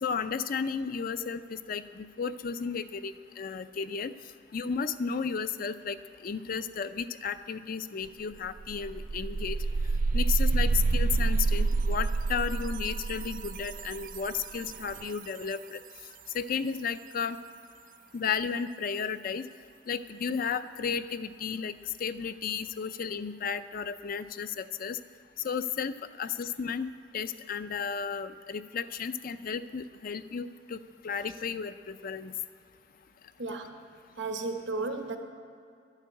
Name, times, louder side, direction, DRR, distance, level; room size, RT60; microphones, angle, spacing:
voice 1, 0.0-4.1 4.5-9.6 10.1-15.8 16.3-17.4 18.1-19.5 19.9-25.0 25.4-32.3, left 6 dB, 50° left, 12 dB, 0.5 m, -33 dB
sound 1, 8.0-8.1 8.5-15.2, right 3 dB, 50° right, 0.4 m, -28 dB
voice 2, 33.4-33.8 34.2-35.2, right 3 dB, 75° right, 4 dB, 1.1 m, -34 dB
12.0 x 7.4 x 8.8 m, 2.5 s
head